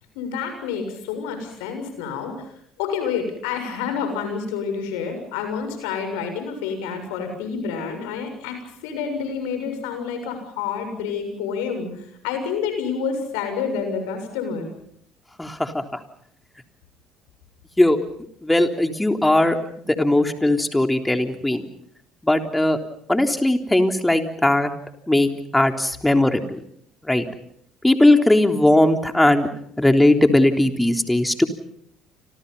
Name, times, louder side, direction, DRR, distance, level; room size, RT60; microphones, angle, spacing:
voice 1, 0.2-2.5 2.8-14.7, left 6 dB, 75° left, 7 dB, 6.9 m, -28 dB
voice 2, 15.4-16.0 17.8-18.0 18.4-19.6 19.9-21.6 22.2-22.8 23.1-24.7 25.1-26.6 27.1-27.2 27.8-29.5 29.8-31.5, left 1 dB, 10° left, 5 dB, 3.6 m, -18 dB
30.0 x 26.5 x 5.6 m, 0.70 s
hypercardioid pair, 60°, 0 cm